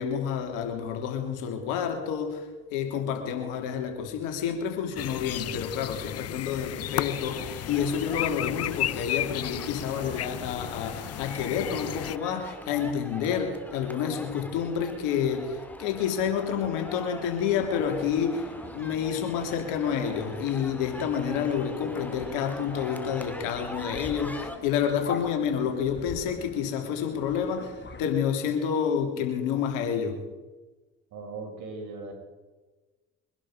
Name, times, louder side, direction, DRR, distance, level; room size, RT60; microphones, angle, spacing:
voice 1, 0.0-2.4 2.7-18.4 18.7-30.2, left 7 dB, 80° left, 4 dB, 3.1 m, -29 dB
sound 1, 5.0-12.2, left 13 dB, 50° left, 0.7 m, -34 dB
sound 2, 6.9-24.6, left 1 dB, 5° left, 2.2 m, -43 dB
sound 3, 17.4-28.1, left 5 dB, 35° left, 2.4 m, -44 dB
voice 2, 31.1-32.1, right 3 dB, 70° right, 2 dB, 5.3 m, -38 dB
23.5 x 11.5 x 5.1 m, 1.2 s
hypercardioid pair, 60°, 31 cm